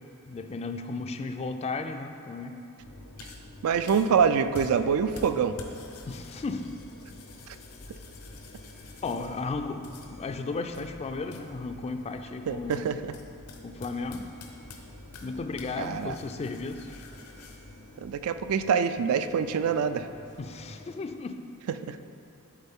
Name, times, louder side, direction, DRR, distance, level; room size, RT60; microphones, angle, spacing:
voice 1, 0.3-2.6 6.1-6.8 9.0-12.9 13.6-14.3 15.2-17.0 20.4-21.5, left 3 dB, 30° left, 7 dB, 0.3 m, -35 dB
sound 1, 2.8-20.9, left 2 dB, 85° left, 0.8 m, -47 dB
voice 2, 3.6-5.6 7.5-7.6 12.5-13.1 15.8-16.2 18.0-20.1 21.8-22.0, right 6 dB, 70° right, 11 dB, 0.3 m, -25 dB
11.0 x 4.1 x 3.6 m, 2.9 s
head